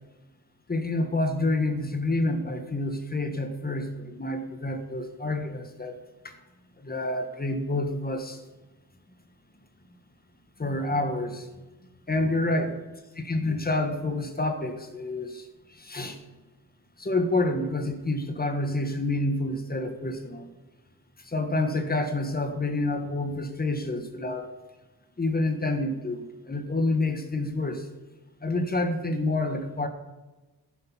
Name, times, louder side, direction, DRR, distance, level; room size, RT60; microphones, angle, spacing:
voice 1, 0.7-6.0 6.2-6.3 6.8-8.4 10.6-11.5 12.1-12.8 13.2-15.4 15.8-16.2 17.0-20.5 21.3-24.5 25.2-27.8 28.4-29.9, left 2 dB, 25° left, 6 dB, 1.4 m, -28 dB
14.0 x 7.2 x 5.7 m, 1.1 s
cardioid pair, 100°, 38 cm